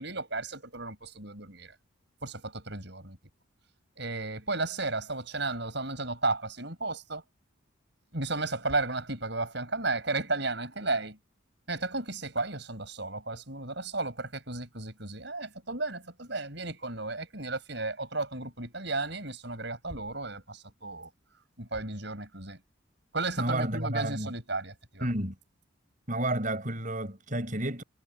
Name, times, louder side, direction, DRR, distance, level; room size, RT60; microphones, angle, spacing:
voice 1, 0.0-1.7 2.2-3.2 4.0-7.2 8.1-11.2 11.7-21.1 21.6-22.6 23.1-25.1, right 3 dB, 55° right, 7.8 m, -34 dB
voice 2, 23.4-24.3 25.0-25.3 26.1-27.8, right 1 dB, 40° right, 7.9 m, -31 dB
head